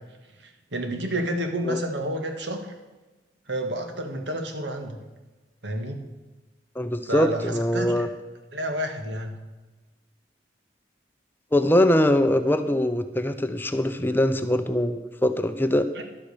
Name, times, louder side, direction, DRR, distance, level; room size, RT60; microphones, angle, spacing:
voice 1, 0.4-2.7 3.5-5.0 5.6-6.0 7.1-8.1 8.5-9.4 16.0-16.1, right 1 dB, 85° right, 5 dB, 1.8 m, -30 dB
voice 2, 6.8-8.1 11.5-15.9, left 1 dB, 10° left, 9 dB, 0.6 m, -22 dB
11.5 x 8.6 x 6.7 m, 1.2 s
head